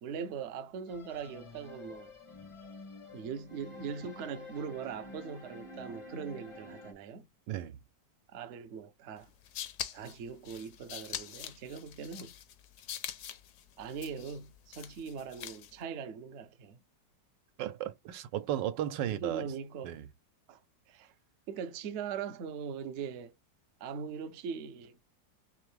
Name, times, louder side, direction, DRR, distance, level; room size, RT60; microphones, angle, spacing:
voice 1, 0.0-2.1 3.1-7.3 8.3-9.3 9.9-12.4 13.8-16.8 19.1-20.0 20.5-20.6 20.9-21.1 21.5-23.4 23.8-25.0, right 6 dB, 65° right, 0.7 m, -41 dB
sound 1, 0.9-6.9, left 2 dB, 30° left, 0.5 m, -49 dB
voice 2, 7.5-7.8 17.6-19.5 19.8-20.1, right 12 dB, 85° right, 1.3 m, -35 dB
sound 2, 9.2-15.8, left 10 dB, 70° left, 1.2 m, -44 dB
3.6 x 3.4 x 3.2 m
omnidirectional pair, 1.9 m